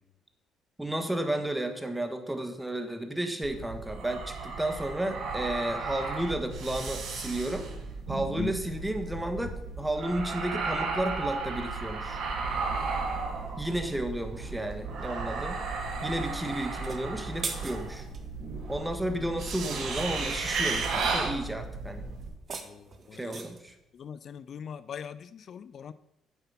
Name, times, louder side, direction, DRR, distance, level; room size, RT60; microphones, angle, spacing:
voice 1, 0.8-7.7 8.1-12.2 13.6-15.6 16.0-18.1 18.7-22.1 23.1-23.7, right 1 dB, 10° right, 7 dB, 1.5 m, -32 dB
sound 1, 3.4-22.3, right 4 dB, 70° right, 2.2 m, -34 dB
sound 2, 16.8-18.3 22.2-23.7, right 4 dB, 40° right, 1.4 m, -40 dB
voice 2, 22.7-23.4 23.9-25.9, left 7 dB, 55° left, 15 dB, 0.3 m, -40 dB
8.1 x 7.8 x 5.7 m, 0.83 s
cardioid pair, 90°, 0 cm